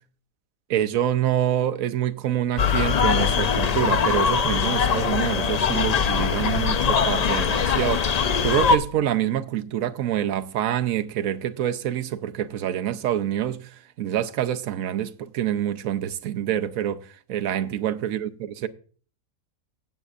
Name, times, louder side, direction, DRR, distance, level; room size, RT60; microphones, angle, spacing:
voice 1, 0.7-13.7 14.0-18.7, right 11 dB, 80° right, 1.1 m, -26 dB
sound 1, 2.6-8.8, left 6 dB, 65° left, 0.4 m, -22 dB
16.5 x 8.2 x 2.4 m
omnidirectional pair, 1.4 m